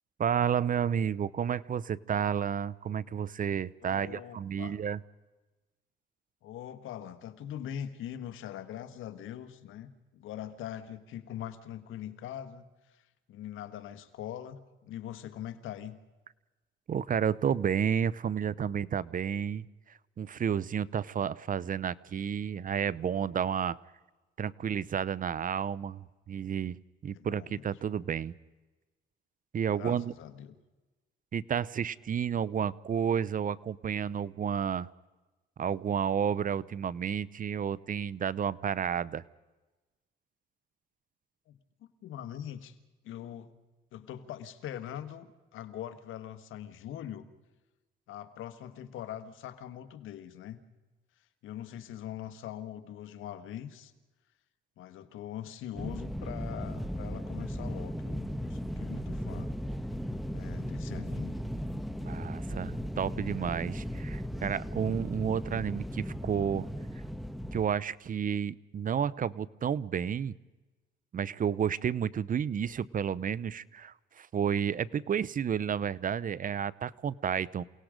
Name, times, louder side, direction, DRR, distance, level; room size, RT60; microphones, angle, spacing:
voice 1, 0.2-5.0 16.9-19.7 20.2-23.8 24.4-28.4 29.5-30.1 31.3-34.9 35.6-39.2 62.0-66.7 67.5-70.3 71.1-77.6, right 8 dB, 45° right, 21 dB, 0.7 m, -31 dB
voice 2, 3.8-4.8 6.4-16.0 27.1-27.7 29.7-30.6 41.5-41.6 42.0-42.8 43.0-43.5 43.9-45.3 45.5-47.3 48.1-50.6 51.4-53.9 54.8-59.5 60.3-61.4, left 10 dB, 85° left, 11 dB, 1.5 m, -42 dB
sound 1, 55.7-67.7, equal, ahead, 1.4 m, -36 dB
28.5 x 18.5 x 5.1 m, 1.1 s
cardioid pair, 90°, 20 cm